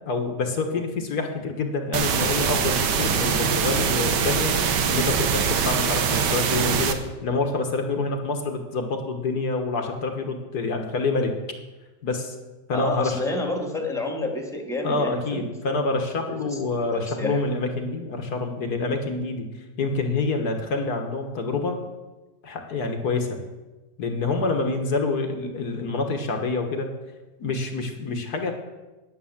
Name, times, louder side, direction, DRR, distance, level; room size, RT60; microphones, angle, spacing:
voice 1, 0.0-4.5 4.9-11.3 12.0-12.4 12.7-13.2 14.8-19.5 19.8-21.8 22.4-23.4 24.0-26.9 27.4-28.5, left 3 dB, 65° left, 4 dB, 1.8 m, -27 dB
sound 1, 1.9-6.9, right 7 dB, 80° right, 1.6 m, -23 dB
voice 2, 12.7-15.8 16.5-16.6 16.9-17.4, left 2 dB, ahead, 2 dB, 1.7 m, -29 dB
9.8 x 9.8 x 7.2 m, 1.1 s
omnidirectional pair, 1.8 m